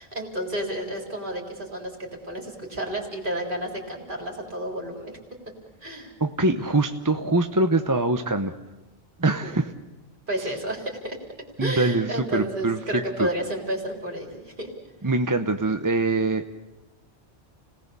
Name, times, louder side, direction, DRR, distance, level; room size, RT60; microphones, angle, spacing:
voice 1, 0.0-5.2 5.8-6.1 9.3-9.6 10.3-11.2 11.6-14.7, right 1 dB, 50° right, 1 dB, 3.8 m, -31 dB
voice 2, 6.2-8.5 9.2-9.7 11.6-13.3 15.0-16.5, right 2 dB, 20° right, 7 dB, 0.8 m, -23 dB
29.5 x 19.0 x 6.9 m, 1.1 s
omnidirectional pair, 1.1 m